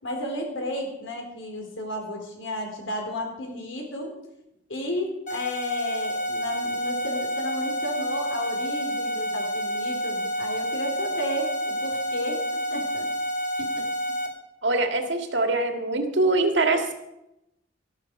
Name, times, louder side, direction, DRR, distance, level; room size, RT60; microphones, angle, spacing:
voice 1, 0.0-4.2 4.7-12.4 12.7-13.1, equal, 85° left, 2 dB, 3.9 m, -32 dB
sound 1, 5.3-14.3, equal, 40° left, 2.8 m, -29 dB
voice 2, 14.6-16.9, right 2 dB, 70° right, 5 dB, 1.9 m, -23 dB
13.5 x 12.0 x 5.3 m, 0.87 s
head